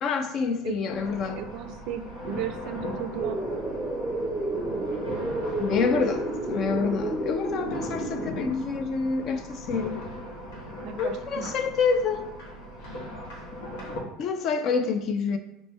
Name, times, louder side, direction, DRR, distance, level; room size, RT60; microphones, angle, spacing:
voice 1, 0.0-1.4 5.6-10.0 11.0-12.3 14.2-15.4, left 5 dB, 40° left, 0.5 m, -27 dB
sound 1, 0.9-14.0, left 1 dB, 80° left, 1.3 m, -39 dB
voice 2, 1.3-3.4 10.8-11.6, right 9 dB, 50° right, 0.4 m, -35 dB
sound 2, 3.2-8.5, right 2 dB, ahead, 0.7 m, -31 dB
5.2 x 3.1 x 3.2 m
cardioid pair, 155°, 0 cm